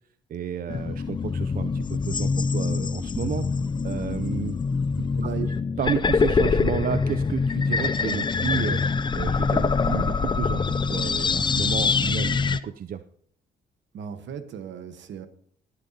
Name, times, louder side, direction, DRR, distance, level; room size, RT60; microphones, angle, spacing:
voice 1, 0.3-3.5 3.8-4.6 5.0-5.1 5.8-8.8 9.1-13.0, right 8 dB, 45° right, 11 dB, 0.5 m, -31 dB
sound 1, 0.7-12.6, left 5 dB, 25° left, 0.4 m, -24 dB
voice 2, 5.2-5.5 13.9-15.3, right 8 dB, 65° right, 10 dB, 1.2 m, -35 dB
19.0 x 8.9 x 2.8 m, 0.63 s
cardioid pair, 90°, 20 cm